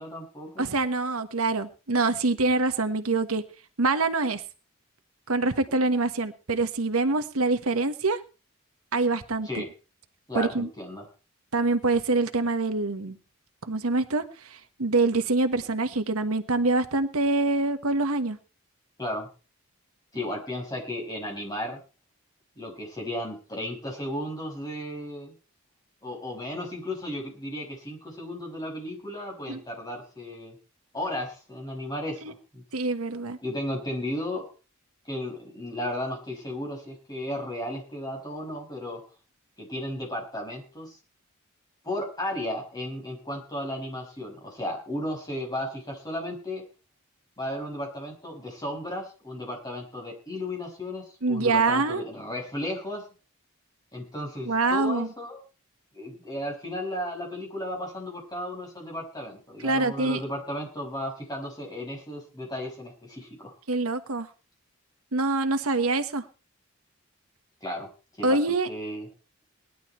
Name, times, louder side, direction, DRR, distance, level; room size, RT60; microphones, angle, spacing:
voice 1, 0.0-0.7 9.4-9.7 10.3-11.0 19.0-19.3 20.1-21.8 22.6-25.4 26.0-30.6 30.9-32.6 33.4-34.5 35.0-39.0 39.6-41.0 41.8-46.6 47.4-53.1 53.9-55.4 55.9-63.6 67.6-67.9 68.2-68.4 68.7-69.1, left 1 dB, 20° left, 0 dB, 5.7 m, -34 dB
voice 2, 0.6-3.4 3.8-4.4 5.3-8.2 8.9-9.6 10.3-10.7 11.5-13.2 13.6-18.4 29.5-29.6 32.2-32.3 32.7-33.4 51.2-52.0 54.4-55.1 59.6-60.2 63.7-64.3 65.1-66.2 68.2-68.7, right 3 dB, 85° right, 9 dB, 1.4 m, -25 dB
19.0 x 11.0 x 4.4 m, 0.35 s
head